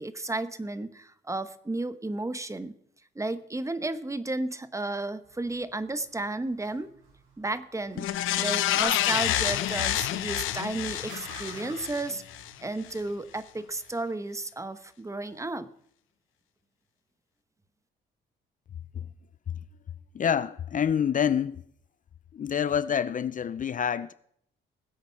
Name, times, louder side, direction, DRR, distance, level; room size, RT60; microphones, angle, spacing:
voice 1, 0.0-2.7 3.1-6.9 7.4-8.1 8.4-12.2 12.6-15.7, right 2 dB, 15° right, 1.0 m, -33 dB
sound 1, 5.2-13.9, right 3 dB, 80° right, 6.8 m, -53 dB
sound 2, 8.0-12.5 12.9-13.0, left 13 dB, 90° left, 0.9 m, -28 dB
voice 2, 20.1-21.6 22.3-24.1, left 8 dB, 40° left, 0.6 m, -27 dB
20.0 x 8.1 x 5.7 m
cardioid pair, 90°, 20 cm